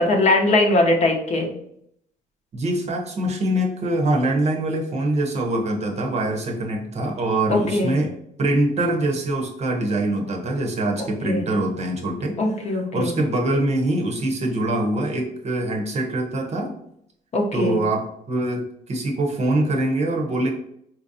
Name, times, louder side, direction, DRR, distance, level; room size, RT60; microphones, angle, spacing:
voice 1, 0.0-1.5 7.5-7.9 11.2-11.4 12.4-13.1 17.3-17.8, left 2 dB, 40° left, 2 dB, 0.7 m, -20 dB
voice 2, 2.5-8.1 8.4-12.4 12.7-16.7 17.5-20.5, right 1 dB, 40° right, 2 dB, 0.8 m, -24 dB
4.2 x 2.6 x 2.6 m, 0.71 s
cardioid pair, 110°, 17 cm